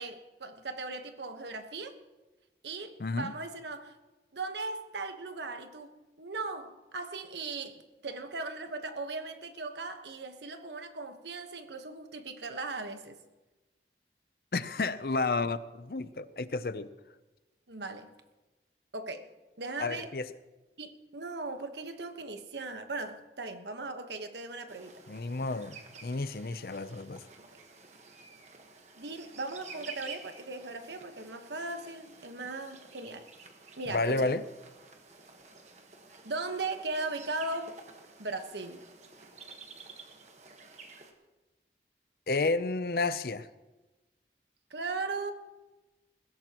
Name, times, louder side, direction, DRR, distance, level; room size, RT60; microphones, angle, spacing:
voice 1, 0.0-1.9 2.6-3.9 4.3-5.9 6.2-13.2 17.7-18.1 18.9-19.3 19.6-20.1 20.8-24.9 27.5-27.6 29.0-33.3 33.8-34.4 36.2-37.7 38.2-38.8 44.7-45.3, right 3 dB, 80° right, 7 dB, 1.3 m, -38 dB
voice 2, 3.0-3.3 14.5-16.9 19.8-20.3 25.1-27.2 33.9-34.4 42.3-43.5, left 3 dB, 55° left, 14 dB, 0.6 m, -31 dB
sound 1, 24.7-41.1, right 4 dB, 40° right, 1.3 m, -51 dB
21.0 x 16.5 x 3.0 m, 1.1 s
head